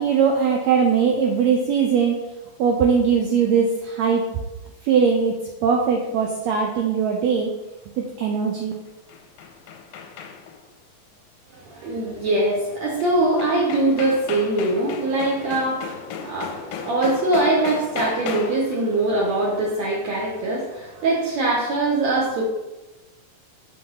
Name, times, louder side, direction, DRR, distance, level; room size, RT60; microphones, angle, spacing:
voice 1, 0.0-2.2 2.6-4.2 4.8-5.3 5.6-7.5 8.0-8.7, right 6 dB, 90° right, 1 dB, 1.5 m, -20 dB
sound 1, 8.9-10.7 13.0-13.1 13.4-18.8, left 6 dB, 85° left, 2.5 m, -34 dB
voice 2, 11.5-22.4, right 2 dB, 70° right, -4 dB, 1.8 m, -22 dB
6.7 x 5.8 x 3.9 m, 1.1 s
omnidirectional pair, 4.0 m